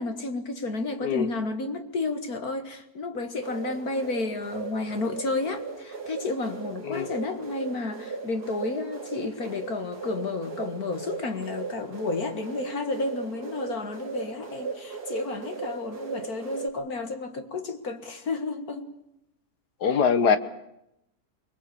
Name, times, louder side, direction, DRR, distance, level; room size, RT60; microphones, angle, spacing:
voice 1, 0.0-18.9 19.8-20.0, left 3 dB, 65° left, 2.3 m, -31 dB
sound 1, 3.4-16.7, right 5 dB, 80° right, 3.3 m, -37 dB
voice 2, 6.8-7.2 19.8-20.4, left 6 dB, 85° left, 1.8 m, -23 dB
24.0 x 21.5 x 8.5 m
omnidirectional pair, 1.7 m